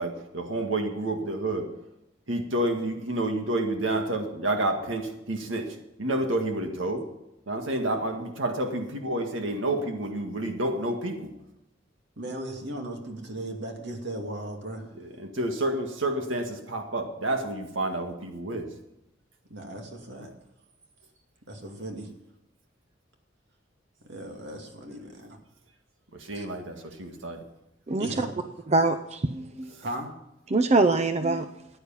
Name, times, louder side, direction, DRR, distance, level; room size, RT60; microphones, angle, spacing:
voice 1, 0.0-1.8 2.3-7.1 7.5-11.3 15.0-18.7 26.1-27.4, right 1 dB, 90° right, 5 dB, 1.8 m, -29 dB
voice 2, 12.2-14.8 19.5-20.3 21.5-22.1 24.0-25.4 26.3-26.5 28.0-28.5 29.8-30.1, right 1 dB, 65° right, 3 dB, 2.5 m, -37 dB
voice 3, 27.9-28.3 28.7-29.7 30.5-31.5, right 3 dB, 35° right, 9 dB, 0.6 m, -23 dB
15.0 x 10.0 x 5.7 m, 0.90 s
head